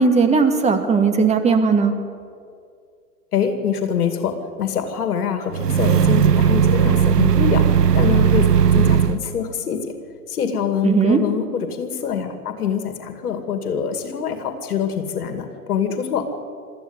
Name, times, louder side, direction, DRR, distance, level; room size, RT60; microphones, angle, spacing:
voice 1, 0.0-1.9 10.8-11.2, right 5 dB, 15° right, 6 dB, 2.0 m, -17 dB
voice 2, 3.3-7.7 7.9-9.9 10.3-16.3, left 7 dB, 65° left, 7 dB, 2.6 m, -24 dB
sound 1, 5.5-9.2, right 7 dB, 80° right, 0.9 m, -16 dB
24.0 x 14.0 x 8.2 m, 2.3 s
hypercardioid pair, 115°, 47 cm